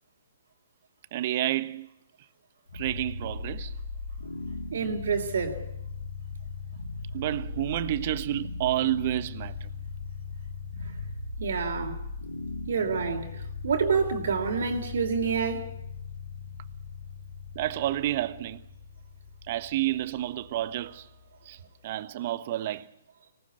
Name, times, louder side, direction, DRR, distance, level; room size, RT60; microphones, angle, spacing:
voice 1, 1.1-1.9 2.7-3.7 7.1-9.7 17.5-18.6 19.5-21.1 21.4-22.9, right 14 dB, 45° right, 1.3 m, -30 dB
sound 1, 2.7-21.7, left 4 dB, 85° left, 3.2 m, -39 dB
voice 2, 4.7-5.7 11.4-12.0 12.7-15.7, right 6 dB, 60° right, 3.5 m, -28 dB
25.0 x 19.0 x 8.4 m
figure-of-eight pair, 130°, 0 cm